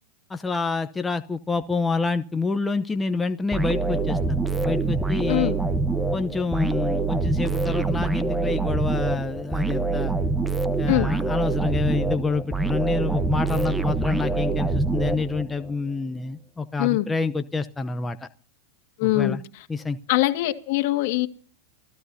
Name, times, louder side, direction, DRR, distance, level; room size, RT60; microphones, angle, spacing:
voice 1, 0.3-5.5 6.1-10.1 10.8-18.3 19.0-19.4 19.7-20.0, left 4 dB, 10° left, 0.7 m, -27 dB
sound 1, 3.5-15.7, right 3 dB, 5° right, 1.0 m, -25 dB
voice 2, 19.0-19.4 20.1-21.3, left 17 dB, 60° left, 1.8 m, -22 dB
28.5 x 15.0 x 2.7 m
supercardioid pair, 130°, 0 cm